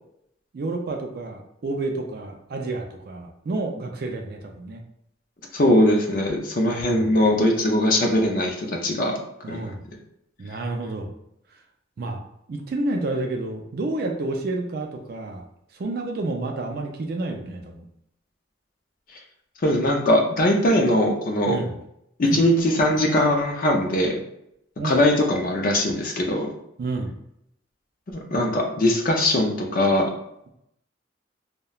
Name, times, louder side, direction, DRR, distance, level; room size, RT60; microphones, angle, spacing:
voice 1, 0.5-4.8 6.8-7.2 9.4-9.8 10.4-11.1 12.0-12.2 12.5-15.4 15.7-17.9 21.5-21.8 22.2-22.4 24.8-25.0 26.8-27.1, right 2 dB, 50° right, 3 dB, 0.3 m, -29 dB
voice 2, 5.5-9.2 9.5-9.6 19.6-21.6 22.2-24.2 24.8-26.5 28.1-30.0, left 1 dB, 45° left, 2 dB, 0.4 m, -21 dB
2.8 x 2.1 x 2.3 m, 0.78 s
head